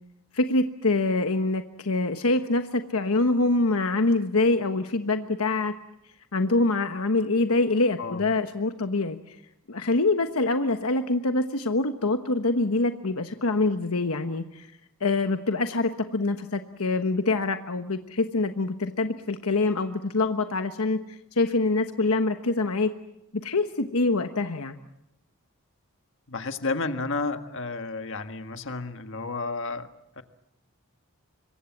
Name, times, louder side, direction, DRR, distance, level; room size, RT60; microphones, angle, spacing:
voice 1, 0.3-5.7 6.3-9.2 9.7-14.7 15.0-22.9 23.3-24.8, left 2 dB, 80° left, 7 dB, 1.2 m, -25 dB
voice 2, 26.3-30.2, left 3 dB, 60° left, 7 dB, 1.7 m, -32 dB
26.5 x 23.0 x 7.3 m, 0.84 s
head